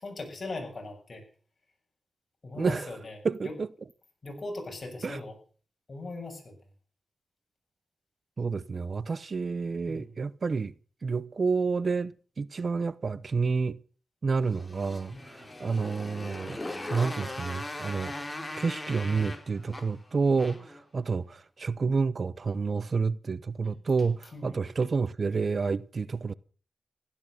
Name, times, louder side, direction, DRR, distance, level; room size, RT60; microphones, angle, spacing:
voice 1, 0.0-1.2 2.4-3.2 3.4-3.6 4.2-5.3 5.9-6.5 9.9-10.1 15.1-15.4 24.3-24.6, left 2 dB, 50° left, 7.2 m, -39 dB
voice 2, 2.6-3.0 3.2-3.7 5.0-5.2 8.4-10.7 11.0-13.8 14.2-16.6 16.9-18.1 18.6-26.3, right 4 dB, 60° right, 0.8 m, -29 dB
Motorcycle, 14.5-20.8, left 1 dB, 25° left, 4.1 m, -39 dB
16.0 x 13.0 x 6.6 m
cardioid pair, 65°, 0 cm